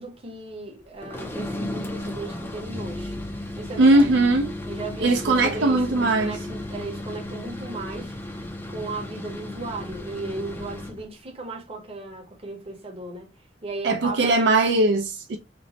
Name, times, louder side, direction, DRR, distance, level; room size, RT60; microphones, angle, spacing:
voice 1, 0.0-3.2 3.6-4.1 4.7-8.1 8.7-13.3 13.6-14.5, right 2 dB, 30° right, 0.8 m, -36 dB
sound 1, 1.0-11.0, left 1 dB, 10° left, 0.5 m, -34 dB
voice 2, 3.8-4.5 5.0-6.4 13.8-15.4, right 2 dB, 70° right, 0.4 m, -19 dB
3.0 x 2.1 x 2.7 m
head